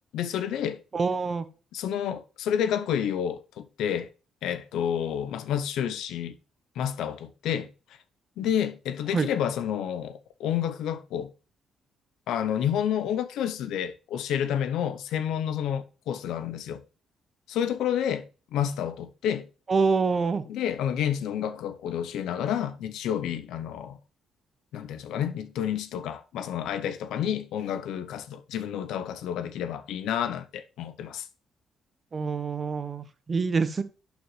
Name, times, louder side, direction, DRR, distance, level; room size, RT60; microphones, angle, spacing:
voice 1, 0.1-0.8 1.7-4.1 4.4-6.3 6.8-7.7 8.4-11.3 12.3-16.8 17.5-19.5 20.5-24.0 24.7-31.3, left 9 dB, 85° left, 0.7 m, -29 dB
voice 2, 0.9-1.4 9.1-9.3 19.7-20.4 32.1-33.8, right 4 dB, 35° right, 0.9 m, -26 dB
11.5 x 5.1 x 3.2 m
cardioid pair, 90°, 0 cm